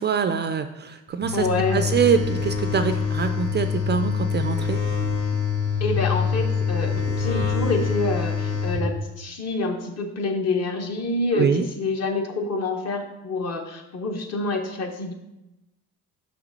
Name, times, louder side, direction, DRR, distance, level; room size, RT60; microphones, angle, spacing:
voice 1, 0.0-1.5 1.7-4.8 11.3-11.7, right 6 dB, 30° right, 9 dB, 0.4 m, -24 dB
sound 1, 1.2-8.8, left 6 dB, 65° left, 2.7 m, -25 dB
voice 2, 1.3-1.9 5.8-15.1, left 3 dB, 50° left, 3 dB, 1.2 m, -27 dB
5.9 x 5.8 x 4.1 m, 0.97 s
cardioid pair, 105°, 34 cm